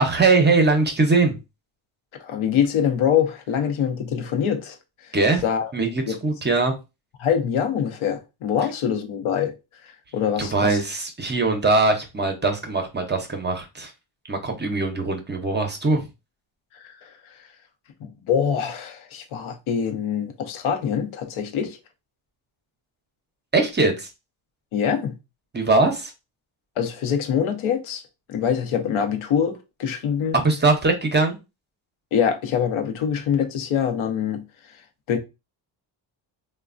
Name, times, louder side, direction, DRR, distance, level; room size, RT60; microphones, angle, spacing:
voice 1, 0.0-1.4 5.1-5.4 5.7-6.7 10.4-13.9 14.3-16.1 23.5-24.1 25.5-26.1 30.4-31.4, right 3 dB, 20° right, 0.5 m, -21 dB
voice 2, 2.1-5.2 5.4-5.7 6.1-6.2 7.2-9.5 9.8-10.8 16.7-17.5 18.0-21.8 24.7-25.1 26.8-28.0 28.3-30.3 32.1-34.4 35.1-35.2, left 8 dB, 80° left, 0.7 m, -24 dB
3.1 x 2.1 x 2.4 m
cardioid pair, 105°, 48 cm